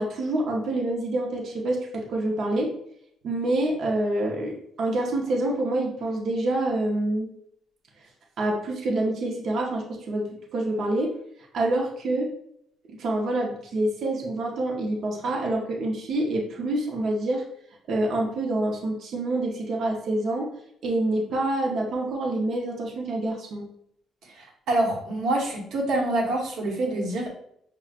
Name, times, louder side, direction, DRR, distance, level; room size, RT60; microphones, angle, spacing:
voice 1, 0.0-2.7 3.2-7.3 8.4-10.2 10.5-11.1 11.5-12.3 13.0-17.4 17.9-20.5 20.8-23.6, right 1 dB, 50° right, -1 dB, 0.7 m, -27 dB
voice 2, 24.3-27.3, right 1 dB, 70° right, -1 dB, 1.1 m, -26 dB
5.8 x 2.3 x 2.4 m, 0.70 s
cardioid pair, 160°, 0 cm